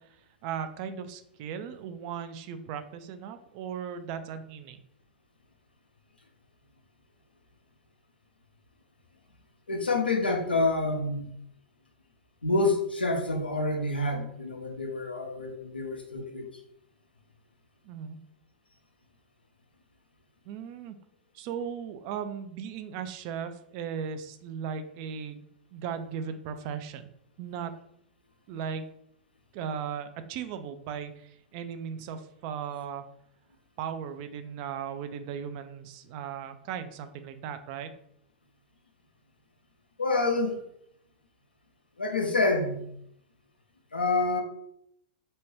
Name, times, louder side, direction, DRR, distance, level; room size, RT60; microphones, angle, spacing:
voice 1, 0.4-4.8 17.8-18.2 20.5-21.0 21.3-27.1 27.4-27.7 28.5-28.9 29.5-33.0 33.8-37.9, right 7 dB, 45° right, 9 dB, 0.3 m, -37 dB
voice 2, 9.7-11.3 12.4-16.5 40.0-40.6 42.0-42.9 43.9-44.4, left 2 dB, 90° left, 4 dB, 0.5 m, -27 dB
2.7 x 2.1 x 3.2 m, 0.72 s
hypercardioid pair, 100°, 5 cm